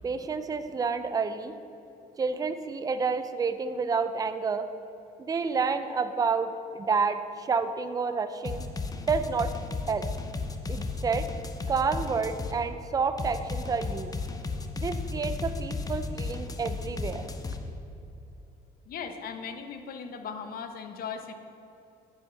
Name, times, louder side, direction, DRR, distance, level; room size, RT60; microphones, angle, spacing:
voice 1, 0.0-1.5 2.2-4.6 5.2-8.6 9.1-9.5 9.9-10.0 10.7-11.2 11.7-14.1 14.8-17.3, right 5 dB, 20° right, 10 dB, 0.5 m, -29 dB
sound 1, 8.4-12.6 13.2-17.6, left 3 dB, 20° left, 0.7 m, -34 dB
voice 2, 18.9-21.3, left 6 dB, 60° left, 7 dB, 0.9 m, -38 dB
9.2 x 5.6 x 6.5 m, 2.8 s
cardioid pair, 110°, 17 cm